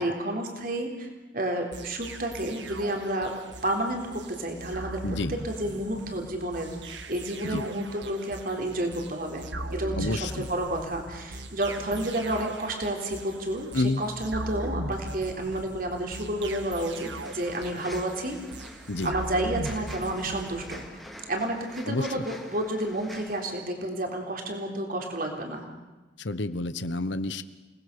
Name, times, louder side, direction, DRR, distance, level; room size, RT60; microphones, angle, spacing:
voice 1, 0.0-3.3 3.6-5.0 5.3-18.4 18.7-20.9 21.3-25.6, right 1 dB, 50° right, 2 dB, 3.7 m, -31 dB
sound 1, 1.7-20.9, right 1 dB, 70° right, 1.8 m, -39 dB
voice 2, 5.0-5.3 7.4-7.6 10.0-10.5 13.7-14.0 18.9-19.1 21.8-22.2 26.2-27.4, left 2 dB, 70° left, 13 dB, 1.1 m, -29 dB
sound 2, 16.4-23.4, equal, ahead, 2.5 m, -46 dB
29.0 x 19.5 x 6.9 m, 1.2 s
head